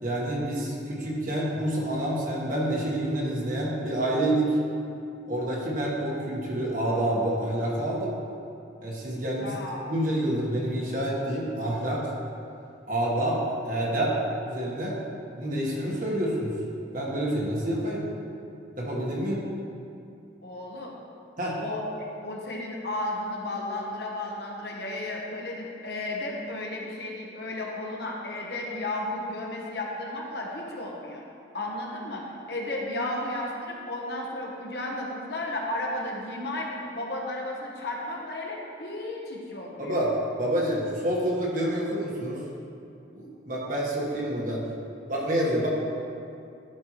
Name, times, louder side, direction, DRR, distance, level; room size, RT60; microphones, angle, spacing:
voice 1, 0.0-4.5 5.3-8.2 8.8-9.5 9.9-12.1 12.9-14.1 14.4-15.0 15.4-16.5 16.9-18.1 18.8-19.4 21.4-21.6 39.8-42.4 43.1-44.6 45.1-45.7, right 1 dB, 45° right, -4 dB, 1.3 m, -28 dB
voice 2, 9.4-9.9 19.3-19.4 20.4-20.9 21.6-31.2 31.5-40.0, left 1 dB, 60° left, -2 dB, 1.1 m, -34 dB
12.0 x 5.3 x 3.1 m, 2.6 s
head